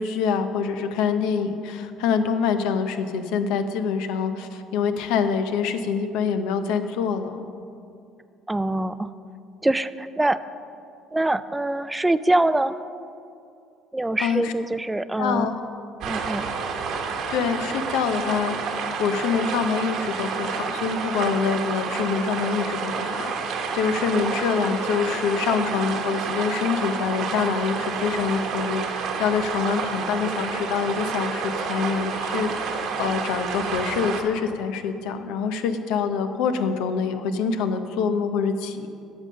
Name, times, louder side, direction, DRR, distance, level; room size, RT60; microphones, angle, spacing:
voice 1, 0.0-7.4 14.2-14.5 15.2-15.5 17.3-38.9, left 6 dB, 80° left, 9 dB, 0.7 m, -25 dB
voice 2, 8.5-9.1 9.6-10.4 11.1-12.8 13.9-15.5 16.1-16.5, right 2 dB, 10° right, 14 dB, 0.4 m, -24 dB
sound 1, 16.0-34.2, right 5 dB, 70° right, 1.2 m, -29 dB
10.5 x 6.9 x 6.4 m, 2.5 s
supercardioid pair, 90°, 0 cm